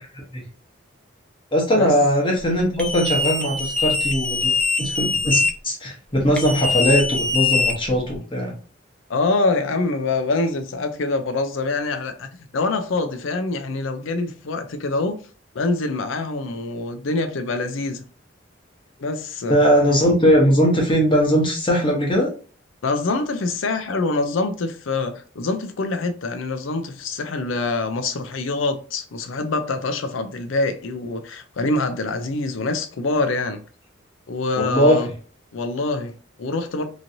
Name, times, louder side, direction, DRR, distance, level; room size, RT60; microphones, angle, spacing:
voice 1, 1.5-4.5 4.8-8.5 19.5-22.3 34.6-35.0, equal, 25° left, 1.0 m, -19 dB
sound 1, 2.8-5.5 6.4-8.2, left 3 dB, 5° left, 0.3 m, -22 dB
voice 2, 9.1-12.3 12.5-15.2 15.5-18.0 19.0-19.6 22.8-33.6 34.3-35.1 35.5-36.9, left 3 dB, 80° left, 0.5 m, -25 dB
3.0 x 2.6 x 2.7 m
head